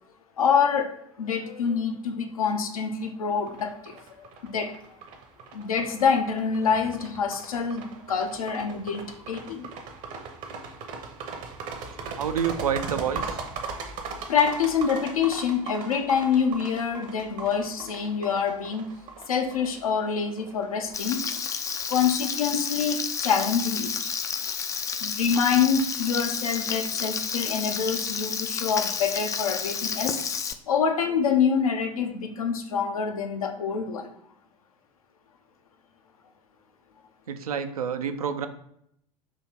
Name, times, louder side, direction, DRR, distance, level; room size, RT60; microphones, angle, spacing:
voice 1, 0.4-4.0 4.4-4.8 5.5-9.7 13.6-19.0 19.3-21.3 21.9-24.2 25.0-30.2 30.7-34.1, left 6 dB, 75° left, 5 dB, 0.6 m, -26 dB
sound 1, 3.5-22.3, right 5 dB, 40° right, 0.8 m, -39 dB
voice 2, 12.2-13.4 37.3-38.5, right 7 dB, 75° right, 8 dB, 0.5 m, -28 dB
Frying (food), 20.9-30.5, left 6 dB, 15° left, 0.3 m, -31 dB
3.8 x 2.8 x 4.4 m, 0.71 s
figure-of-eight pair, 80°, 19 cm